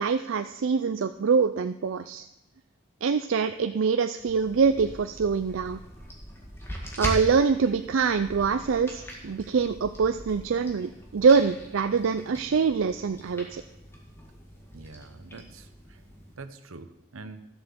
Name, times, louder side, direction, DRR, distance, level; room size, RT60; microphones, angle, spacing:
voice 1, 0.0-2.2 3.0-5.8 7.0-13.6, right 5 dB, 70° right, 9 dB, 0.4 m, -24 dB
sound 1, 4.2-16.3, equal, 10° left, 2.0 m, -41 dB
voice 2, 14.7-16.0 16.4-17.5, right 3 dB, 90° right, 11 dB, 1.0 m, -45 dB
13.0 x 7.9 x 6.9 m, 0.89 s
head